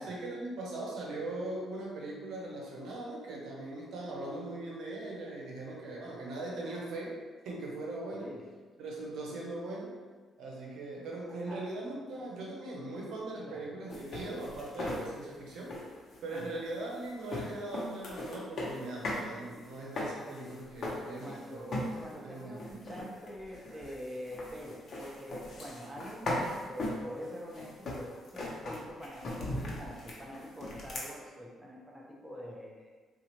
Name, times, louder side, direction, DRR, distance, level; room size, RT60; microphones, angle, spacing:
voice 1, 0.0-7.2 7.4-8.3 8.8-10.0 10.4-15.8 16.2-21.6 22.1-22.6, right 2 dB, 80° right, -3 dB, 0.8 m, -40 dB
voice 2, 13.3-13.7 16.3-16.5 21.2-32.9, equal, 15° right, -3 dB, 0.7 m, -45 dB
sound 1, 13.9-19.3 19.5-21.4 21.7-22.2 22.5-31.1, left 1 dB, 50° left, 0.8 m, -39 dB
4.0 x 2.4 x 2.9 m, 1.4 s
cardioid pair, 90°, 0 cm